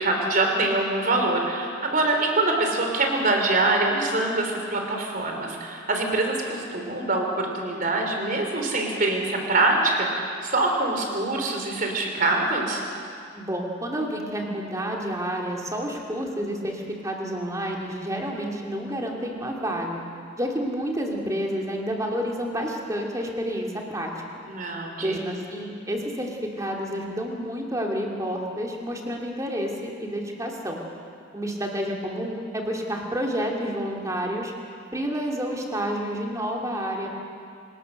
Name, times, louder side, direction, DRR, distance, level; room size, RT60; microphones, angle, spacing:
voice 1, 0.0-10.1 10.4-12.8 24.5-25.2, right 2 dB, 45° right, 2 dB, 3.6 m, -24 dB
voice 2, 13.3-20.0 20.4-24.1 25.0-30.8 31.3-34.5 34.9-37.2, equal, 15° right, -1 dB, 2.6 m, -29 dB
25.5 x 19.5 x 6.6 m, 2.4 s
head